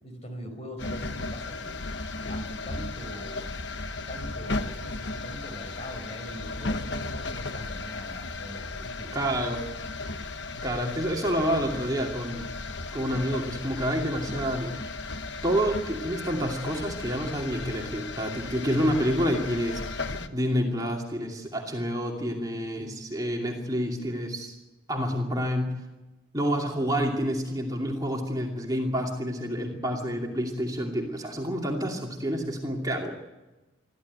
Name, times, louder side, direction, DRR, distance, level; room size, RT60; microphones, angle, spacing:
voice 1, 0.0-1.8 2.3-3.6 4.1-9.4, equal, 30° left, 5 dB, 4.6 m, -42 dB
sound 1, 0.8-20.3, left 3 dB, 60° left, 1.2 m, -35 dB
voice 2, 9.1-9.6 10.6-12.5 12.9-14.8 15.4-24.5 24.9-25.7 26.3-33.2, equal, 20° right, 0 dB, 2.6 m, -28 dB
22.5 x 14.5 x 9.4 m, 1.1 s
head